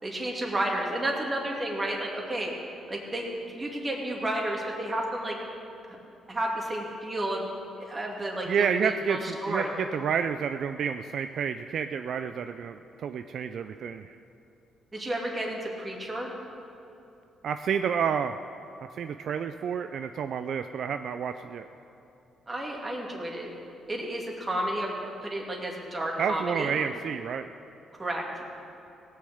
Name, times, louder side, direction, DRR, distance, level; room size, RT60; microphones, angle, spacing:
voice 1, 0.0-2.5 2.9-5.4 6.3-7.4 7.8-9.7 14.9-16.3 22.5-23.5 23.9-24.9 25.2-26.7 28.0-28.4, right 1 dB, 25° right, -1 dB, 2.6 m, -31 dB
voice 2, 8.5-14.2 17.4-18.3 18.9-21.7 26.2-27.5, right 7 dB, 65° right, 9 dB, 0.4 m, -30 dB
17.0 x 6.5 x 7.9 m, 2.8 s
cardioid pair, 90°, 0 cm